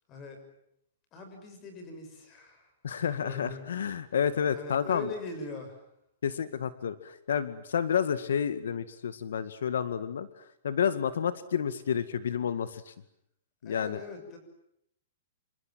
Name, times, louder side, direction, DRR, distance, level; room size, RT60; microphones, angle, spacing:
voice 1, 0.1-0.4 1.1-3.6 4.5-5.8 13.6-14.4, left 3 dB, 20° left, 6 dB, 6.7 m, -42 dB
voice 2, 2.8-5.1 6.2-12.9 13.6-14.0, left 8 dB, 85° left, 12 dB, 2.0 m, -30 dB
28.5 x 26.5 x 7.6 m, 0.75 s
hypercardioid pair, 175°, 0 cm